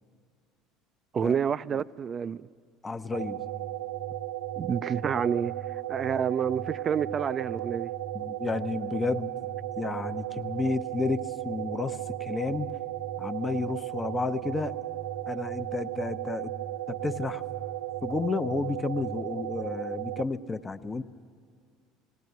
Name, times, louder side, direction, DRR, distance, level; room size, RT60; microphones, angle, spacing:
voice 1, 1.1-2.5 4.6-5.6 5.9-7.9, right 7 dB, 40° right, 0.4 m, -28 dB
voice 2, 2.8-3.4 8.1-9.3 9.8-12.7 13.2-14.7 15.3-16.5 16.9-17.4 18.0-21.0, left 3 dB, 25° left, 0.8 m, -31 dB
sound 1, 3.1-20.2, right 13 dB, 80° right, 1.1 m, -35 dB
19.0 x 17.5 x 9.4 m
hypercardioid pair, 75°, 0 cm